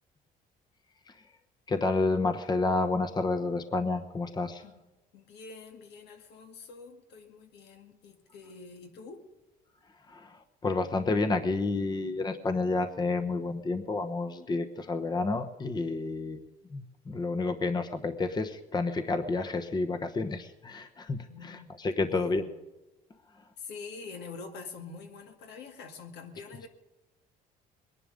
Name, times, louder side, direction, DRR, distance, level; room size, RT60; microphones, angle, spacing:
voice 1, 1.7-4.6 10.1-16.5 16.7-22.4, left 3 dB, 25° left, 8 dB, 1.0 m, -30 dB
voice 2, 5.1-9.2 21.3-21.7 22.1-22.5 23.6-26.7, left 4 dB, 80° left, 4 dB, 2.2 m, -45 dB
21.0 x 11.0 x 5.2 m, 1.1 s
cardioid pair, 110°, 17 cm